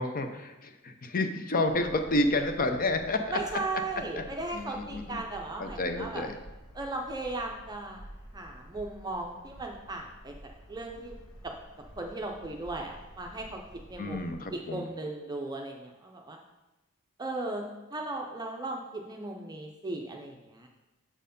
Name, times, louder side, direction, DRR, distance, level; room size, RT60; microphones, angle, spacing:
voice 1, 0.0-3.6 4.1-5.2 5.6-6.4 14.0-14.9, left 2 dB, 40° left, 7 dB, 0.7 m, -30 dB
sound 1, 1.7-14.3, equal, 80° left, 1.9 m, -50 dB
voice 2, 3.3-6.2 6.8-8.1 8.3-10.3 10.7-11.1 12.0-13.6 13.9-14.2 14.5-16.4 17.2-20.7, right 2 dB, 20° right, 2 dB, 0.5 m, -37 dB
7.3 x 4.5 x 5.2 m, 1.0 s
head